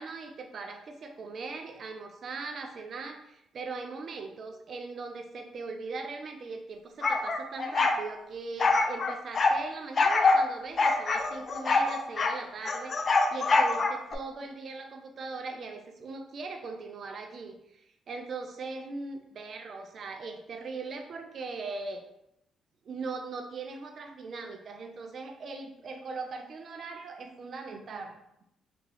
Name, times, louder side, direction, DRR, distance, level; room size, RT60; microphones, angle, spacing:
voice 1, 0.0-17.6 18.1-22.0 22.9-28.4, right 4 dB, 55° right, 4 dB, 0.5 m, -40 dB
sound 1, 7.0-8.0 8.6-9.6 10.0-10.4 10.8-12.4 12.7-14.2, left 3 dB, 45° left, 0.3 m, -25 dB
3.5 x 2.0 x 3.3 m, 0.81 s
cardioid pair, 75°, 0 cm